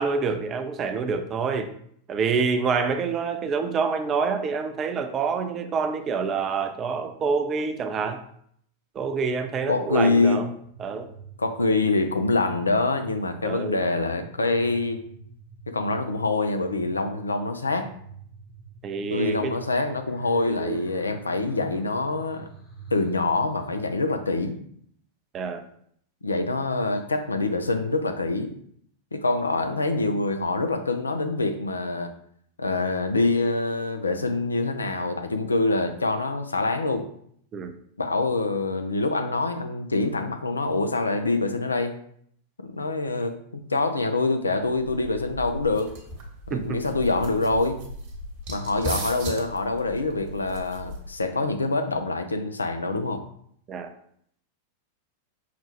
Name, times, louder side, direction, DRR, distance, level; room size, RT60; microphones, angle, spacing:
voice 1, 0.0-1.7 2.1-8.2 9.0-10.5 10.8-11.1 13.4-13.8 18.8-19.5 20.5-20.8 25.3-25.6 37.5-37.7 46.5-46.8 53.7-53.9, right 5 dB, 30° right, 8 dB, 0.4 m, -27 dB
voice 2, 9.7-10.4 11.4-15.0 15.7-17.9 19.1-22.5 22.9-24.6 26.2-28.5 29.1-32.1 32.6-37.1 38.0-41.9 42.6-45.9 46.5-47.8 48.5-53.2, left 3 dB, 75° left, 7 dB, 0.4 m, -25 dB
sound 1, 10.6-23.7, right 5 dB, 20° left, 0.9 m, -47 dB
sound 2, 44.6-51.3, right 1 dB, 45° right, 1.1 m, -37 dB
5.6 x 2.2 x 2.9 m, 0.65 s
figure-of-eight pair, 90°, 0 cm